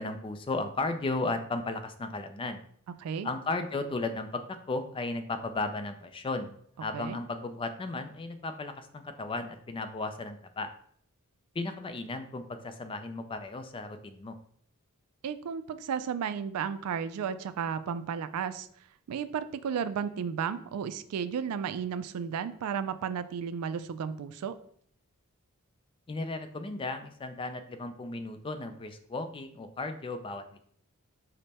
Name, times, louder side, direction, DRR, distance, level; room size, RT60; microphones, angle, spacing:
voice 1, 0.0-2.6 3.2-4.4 4.7-10.7 11.5-14.4 26.1-30.6, left 2 dB, 25° left, 8 dB, 0.3 m, -35 dB
voice 2, 15.2-18.7 19.1-24.5, right 7 dB, 80° right, 12 dB, 0.3 m, -33 dB
5.1 x 2.1 x 4.1 m, 0.64 s
head